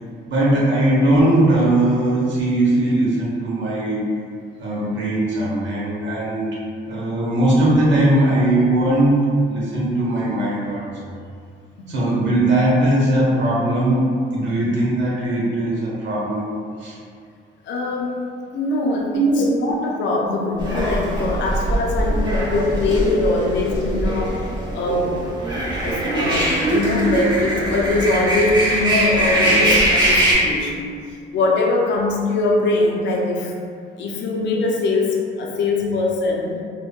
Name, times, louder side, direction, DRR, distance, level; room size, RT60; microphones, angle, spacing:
voice 1, 0.3-4.1 4.6-6.5 6.9-9.2 9.5-11.1 11.9-14.1 14.3-16.5 16.8-17.0 19.1-19.5 24.6-24.8 25.6-25.7 29.5-29.7, right 1 dB, 65° right, -6 dB, 0.9 m, -19 dB
voice 2, 17.7-18.2 18.5-24.3 24.7-25.1 25.8-30.9 31.3-33.5 34.0-36.6, left 2 dB, 65° left, -1 dB, 0.5 m, -22 dB
sound 1, 20.6-30.3, right 1 dB, 20° right, 1.2 m, -21 dB
3.4 x 2.1 x 2.2 m, 2.2 s
cardioid pair, 90°, 20 cm